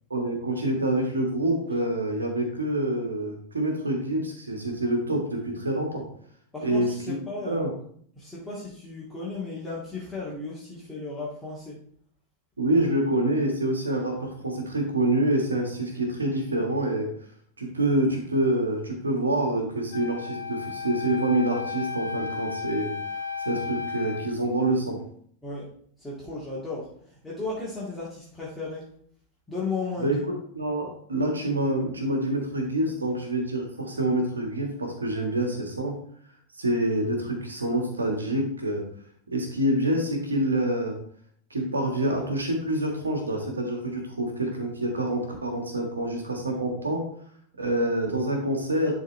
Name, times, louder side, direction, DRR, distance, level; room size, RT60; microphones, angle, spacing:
voice 1, 0.1-6.1 6.6-7.1 7.4-7.7 12.6-17.1 17.6-23.0 23.4-25.0 30.0-36.0 36.6-38.8 39.3-41.0 41.5-47.1 47.6-48.9, right 1 dB, 75° right, 3 dB, 1.6 m, -26 dB
voice 2, 6.5-7.6 8.2-11.8 25.4-25.7 26.0-28.9 29.5-30.2, left 3 dB, 5° left, -8 dB, 1.9 m, -35 dB
Wind instrument woodwind instrument, 19.9-24.4, left 5 dB, 65° left, 1.1 m, -34 dB
11.0 x 3.8 x 3.2 m, 0.62 s
figure-of-eight pair, 90°, 0 cm